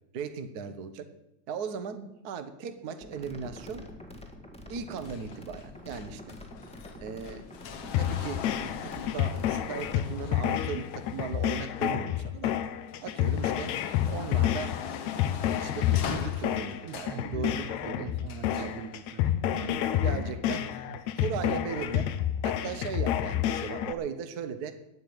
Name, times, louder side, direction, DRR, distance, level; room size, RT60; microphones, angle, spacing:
voice 1, 0.1-1.1 1.5-2.0 2.2-3.8 4.7-6.2 6.9-7.4 8.0-12.5 13.0-13.7 14.0-15.0 15.6-18.1 18.6-18.8 19.5-19.7 20.0-20.7 21.1-22.1 22.4-24.7, right 6 dB, 60° right, 8 dB, 1.0 m, -37 dB
sound 1, 3.0-10.0, left 1 dB, 5° left, 0.7 m, -46 dB
sound 2, 5.0-12.2 12.7-17.3 18.3-18.8 19.7-19.8, left 7 dB, 60° left, 1.4 m, -41 dB
sound 3, 7.9-23.9, left 11 dB, 75° left, 2.0 m, -29 dB
voice 2, 16.9-21.5, right 9 dB, 75° right, 7 dB, 1.9 m, -43 dB
10.5 x 9.1 x 9.6 m, 0.92 s
omnidirectional pair, 3.3 m